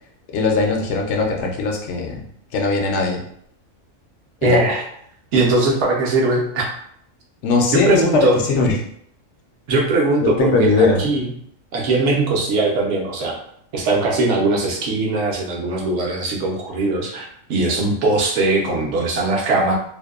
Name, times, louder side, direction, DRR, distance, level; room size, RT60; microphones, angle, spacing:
voice 1, 0.3-2.2 2.5-3.2 4.4-4.6 7.4-8.8 10.2-11.0, left 4 dB, 65° left, 1 dB, 0.8 m, -19 dB
voice 2, 4.4-4.8 5.3-6.7 7.7-8.4 9.7-11.3 11.7-13.4 13.7-19.7, right 2 dB, 65° right, -1 dB, 0.9 m, -20 dB
2.7 x 2.1 x 2.3 m, 0.67 s
omnidirectional pair, 1.4 m